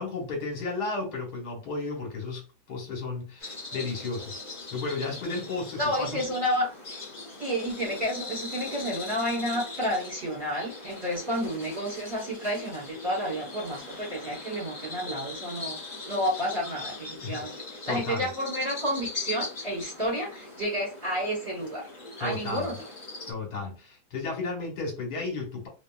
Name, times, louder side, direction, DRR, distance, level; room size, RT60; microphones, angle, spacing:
voice 1, 0.0-2.4 2.7-6.2 17.2-17.4 17.9-18.3 22.2-22.7 23.3-25.7, left 3 dB, 70° left, 1.6 m, -33 dB
sound 1, 3.4-23.3, left 3 dB, 40° left, 0.9 m, -40 dB
voice 2, 5.8-7.0 7.4-15.8 16.1-21.9 22.2-22.8, equal, 35° right, 1.1 m, -30 dB
2.8 x 2.6 x 2.3 m
omnidirectional pair, 1.8 m